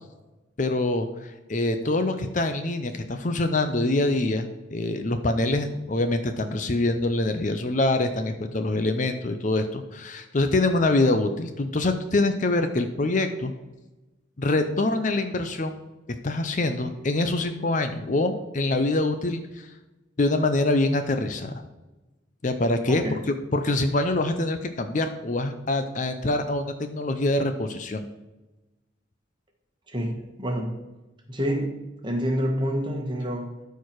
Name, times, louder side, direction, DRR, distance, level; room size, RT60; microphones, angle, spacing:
voice 1, 0.6-13.5 14.4-15.8 16.2-19.7 20.2-21.5 22.4-23.0 23.5-28.1, left 2 dB, 40° left, 8 dB, 0.6 m, -25 dB
voice 2, 29.9-30.7 31.3-31.7 32.0-33.6, equal, 25° right, 2 dB, 1.4 m, -28 dB
13.0 x 4.7 x 4.6 m, 1.1 s
head